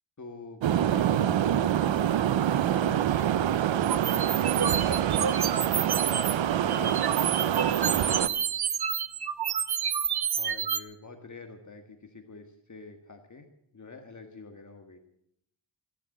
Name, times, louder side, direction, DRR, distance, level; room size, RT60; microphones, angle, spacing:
voice 1, 0.2-3.5 4.5-5.0 6.6-8.3 10.3-13.5 13.7-15.0, left 3 dB, 40° left, 5 dB, 1.7 m, -47 dB
sound 1, 0.6-8.3, right 10 dB, 85° right, 0.7 m, -26 dB
sound 2, 3.8-6.3 6.7-10.8, right 8 dB, 60° right, 1.0 m, -29 dB
15.5 x 11.0 x 7.7 m, 0.73 s
wide cardioid pair, 100°, 44 cm